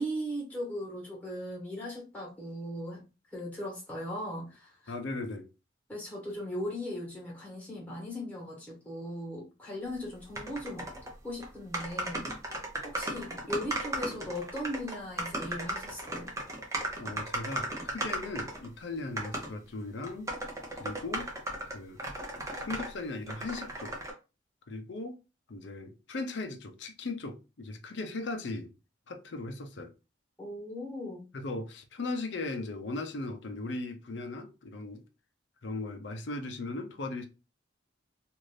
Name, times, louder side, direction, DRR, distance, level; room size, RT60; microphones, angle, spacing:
voice 1, 0.0-4.9 5.9-10.9 11.2-12.3 12.8-16.3 30.4-31.2, equal, 10° left, 1.3 m, -38 dB
voice 2, 4.9-5.5 16.7-20.3 20.8-21.3 21.7-22.0 22.6-24.0 24.7-25.2 25.5-28.7 29.1-29.9 31.3-35.0 35.6-37.3, left 2 dB, 65° left, 0.6 m, -38 dB
sound 1, 10.3-11.1 11.4-11.5 11.7-18.7 19.2-19.5 20.0-22.9 23.3-24.1, right 1 dB, 15° right, 0.6 m, -36 dB
2.6 x 2.5 x 3.2 m
head